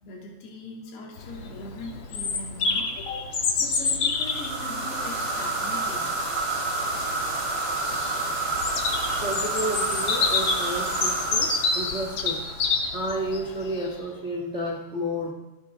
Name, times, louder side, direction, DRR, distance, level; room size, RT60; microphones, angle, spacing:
voice 1, 0.0-3.3 3.6-6.2, left 2 dB, 80° left, -2 dB, 4.7 m, -40 dB
Bird vocalization bird call bird song, 1.2-13.9, left 4 dB, 55° left, 1.6 m, -28 dB
sound 1, 4.1-12.6, right 2 dB, 15° right, 4.2 m, -29 dB
voice 2, 9.2-11.5 11.7-12.4 12.9-15.3, equal, 75° right, 0 dB, 0.6 m, -31 dB
28.5 x 11.0 x 3.6 m, 1.1 s
omnidirectional pair, 4.6 m